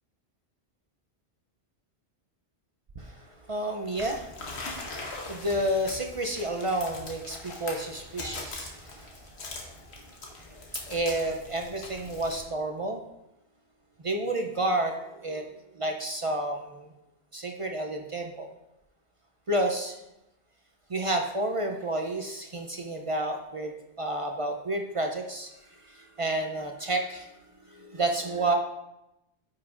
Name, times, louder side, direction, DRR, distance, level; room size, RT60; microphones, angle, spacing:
voice 1, 3.0-4.4 4.8-9.2 9.7-9.8 10.5-13.0 14.0-15.5 15.7-16.9 17.3-18.5 19.5-20.0 20.9-23.7 24.0-27.3 27.7-28.5, right 1 dB, 40° right, 3 dB, 0.5 m, -30 dB
sound 1, 4.0-12.4, left 2 dB, 70° left, 1.4 m, -41 dB
9.4 x 5.8 x 2.5 m, 0.91 s
omnidirectional pair, 1.1 m